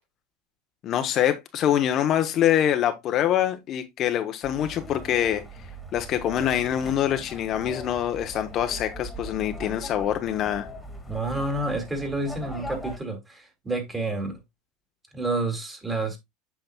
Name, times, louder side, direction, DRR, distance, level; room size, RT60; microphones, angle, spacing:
voice 1, 0.8-5.4 5.9-10.7, left 10 dB, 45° left, 0.9 m, -25 dB
sound 1, 4.4-13.0, equal, 10° left, 1.9 m, -40 dB
voice 2, 11.1-14.4 15.1-16.2, right 2 dB, 15° right, 2.4 m, -29 dB
8.0 x 5.8 x 2.2 m
supercardioid pair, 120°, 0 cm